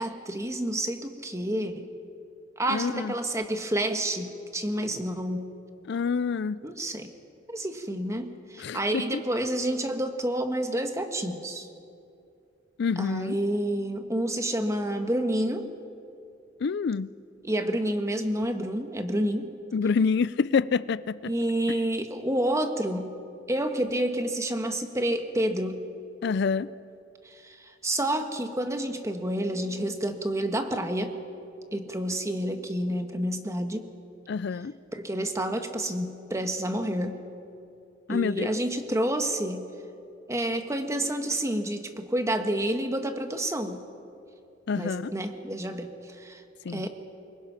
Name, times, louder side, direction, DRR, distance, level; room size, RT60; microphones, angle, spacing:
voice 1, 0.0-1.9 2.6-5.5 6.6-7.1 7.5-11.7 13.0-15.7 17.4-19.5 21.3-23.1 23.5-25.8 27.2-31.1 31.7-33.9 34.9-37.2 38.1-39.7 40.3-43.8 44.7-46.4 46.7-46.9, right 1 dB, 15° right, 6 dB, 1.4 m, -29 dB
voice 2, 2.7-3.1 5.9-6.6 8.6-9.2 12.8-13.4 16.6-17.1 19.7-21.3 26.2-26.7 34.3-34.7 38.1-38.5 44.7-45.1 46.6-46.8, left 5 dB, 65° left, 17 dB, 0.4 m, -27 dB
24.5 x 22.5 x 5.8 m, 2.6 s
head